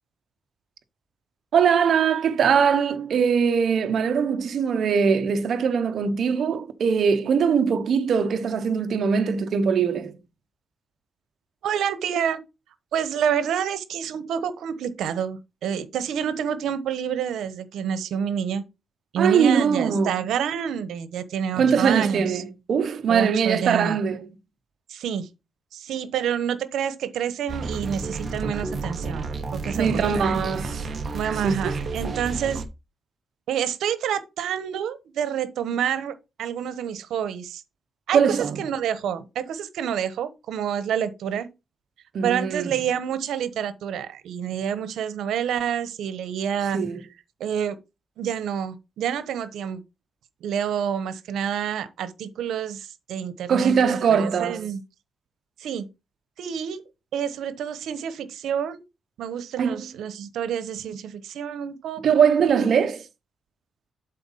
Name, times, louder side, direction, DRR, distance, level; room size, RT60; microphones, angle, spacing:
voice 1, 1.5-10.2 19.2-20.1 21.6-24.2 29.8-30.8 31.4-31.7 32.0-32.2 38.1-38.6 42.1-42.8 46.7-47.0 53.5-54.7 59.6-59.8 62.0-63.0, right 6 dB, 60° right, 1.0 m, -21 dB
voice 2, 11.6-12.4 12.9-18.6 19.1-22.4 23.1-24.0 24.9-25.3 25.7-29.3 29.5-30.2 31.1-32.6 33.5-37.6 38.1-41.5 42.2-46.8 47.4-47.8 48.2-49.8 50.4-54.8 55.6-55.9 56.4-56.8 57.1-58.8 59.2-62.3, right 8 dB, 90° right, 1.1 m, -28 dB
sound 1, 27.5-32.6, right 3 dB, 35° right, 1.1 m, -31 dB
8.0 x 4.0 x 5.7 m
cardioid pair, 135°, 0 cm